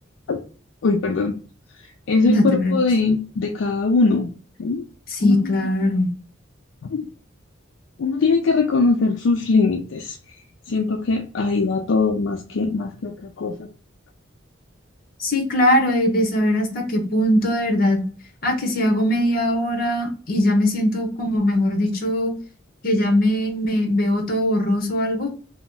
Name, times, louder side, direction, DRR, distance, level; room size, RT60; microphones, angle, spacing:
voice 1, 0.8-1.3 2.1-4.3 4.6-4.8 5.2-5.9 6.8-7.1 8.0-10.2 10.7-13.7, left 4 dB, 70° left, 3 dB, 0.4 m, -21 dB
voice 2, 2.2-2.8 5.1-6.1 15.2-18.0 18.4-22.3 22.8-25.3, left 1 dB, 50° left, 3 dB, 0.9 m, -20 dB
2.8 x 2.0 x 3.6 m, 0.38 s
head